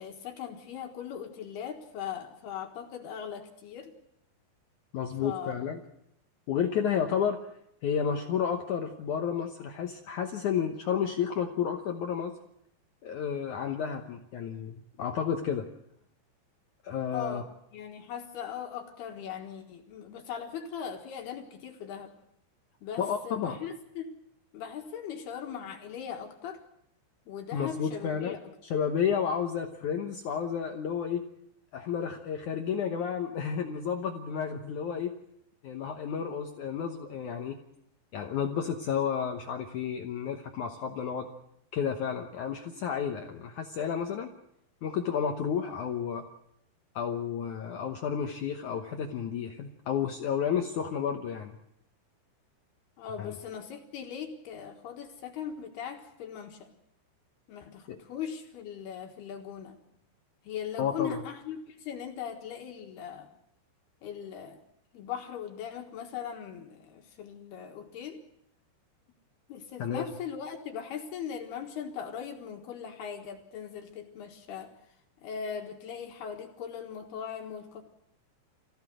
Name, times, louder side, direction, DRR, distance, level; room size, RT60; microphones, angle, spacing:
voice 1, 0.0-3.9 5.2-5.7 17.1-17.4 17.7-22.1 22.8-24.2 24.5-26.6 27.3-28.4 53.0-56.7 57.5-59.8 60.4-63.3 64.0-64.6 64.9-68.2 69.5-74.7 75.2-77.8, left 8 dB, 65° left, 3 dB, 3.3 m, -39 dB
voice 2, 4.9-5.8 6.5-7.4 7.8-12.3 13.0-15.7 16.8-17.4 23.0-23.6 27.5-28.3 28.7-31.2 31.7-35.1 35.6-37.6 38.1-41.3 41.7-44.3 44.8-46.3 46.9-51.6 53.2-53.3 57.9-58.0 60.8-61.2 69.8-70.1, left 7 dB, 85° left, 4 dB, 1.7 m, -31 dB
24.0 x 16.0 x 7.9 m, 0.77 s
omnidirectional pair, 5.2 m